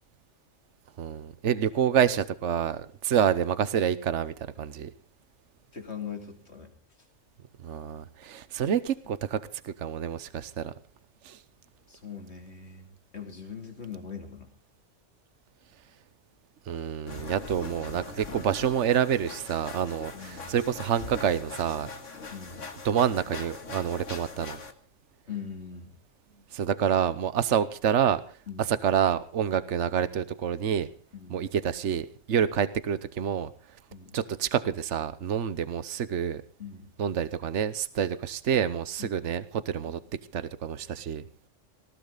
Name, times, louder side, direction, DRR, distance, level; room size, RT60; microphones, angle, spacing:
voice 1, 1.0-4.9 7.6-10.7 11.2-11.4 16.7-21.9 22.8-24.6 26.5-28.2 28.7-30.9 31.3-33.5 34.1-36.4 37.0-40.0 40.3-41.2, right 8 dB, 70° right, 14 dB, 1.2 m, -27 dB
voice 2, 5.7-6.7 11.9-14.5 20.1-20.6 22.3-22.7 25.3-26.0 28.5-28.7 31.1-31.4 33.9-34.1 36.6-36.9 39.0-39.2, left 6 dB, 60° left, 4 dB, 3.3 m, -41 dB
sound 1, 17.1-24.7, left 4 dB, 75° left, 2.2 m, -42 dB
19.5 x 17.5 x 4.0 m, 0.40 s
omnidirectional pair, 1.3 m